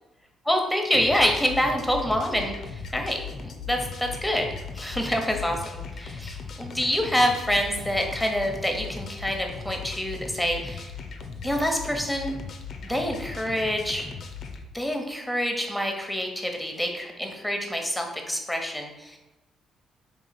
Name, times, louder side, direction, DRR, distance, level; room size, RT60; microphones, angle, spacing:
voice 1, 0.5-3.2 3.4-4.5 4.7-10.9 11.4-12.4 12.8-14.1 14.7-19.2, equal, 5° left, 3 dB, 0.9 m, -27 dB
sound 1, 0.9-14.6, left 5 dB, 55° left, 0.5 m, -38 dB
3.8 x 2.8 x 4.1 m, 0.98 s
hypercardioid pair, 45°, 0 cm